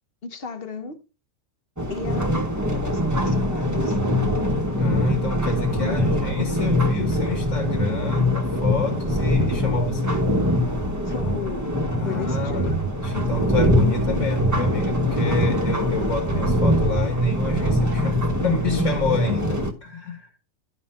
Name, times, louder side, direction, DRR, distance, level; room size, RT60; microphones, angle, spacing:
voice 1, 0.2-1.0 1.9-4.0 5.8-6.3 11.1-11.8 12.0-12.9, left 5 dB, 45° left, 1.2 m, -35 dB
sound 1, 1.8-19.7, equal, 15° right, 0.9 m, -23 dB
voice 2, 4.8-10.2 12.0-20.3, left 2 dB, 65° left, 2.0 m, -28 dB
11.5 x 5.3 x 4.3 m
omnidirectional pair, 1.4 m